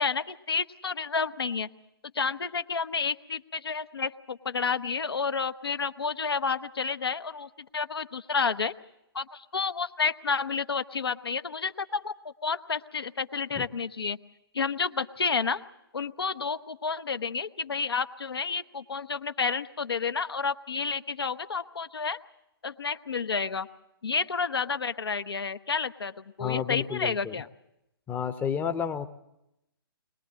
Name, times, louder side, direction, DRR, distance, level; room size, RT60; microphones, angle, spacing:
voice 1, 0.0-1.7 2.1-8.7 9.1-12.1 12.4-14.2 14.5-15.6 15.9-22.2 22.6-23.7 24.0-26.1 26.4-27.5, left 5 dB, 75° left, 11 dB, 0.9 m, -30 dB
voice 2, 26.4-27.4 28.1-29.1, left 8 dB, 15° left, 9 dB, 0.7 m, -31 dB
22.0 x 21.0 x 7.4 m, 0.86 s
figure-of-eight pair, 130°, 13 cm